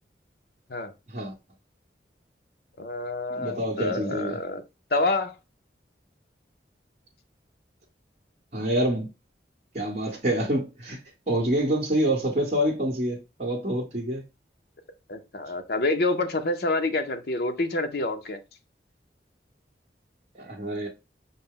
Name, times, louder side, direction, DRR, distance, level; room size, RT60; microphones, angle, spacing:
voice 1, 2.8-4.6 4.9-5.4 15.1-18.4, left 2 dB, 55° left, 0.6 m, -27 dB
voice 2, 3.4-4.4 8.5-9.1 9.7-11.0 11.3-14.2 20.3-20.9, right 1 dB, 40° right, 0.9 m, -26 dB
5.4 x 2.1 x 3.6 m
head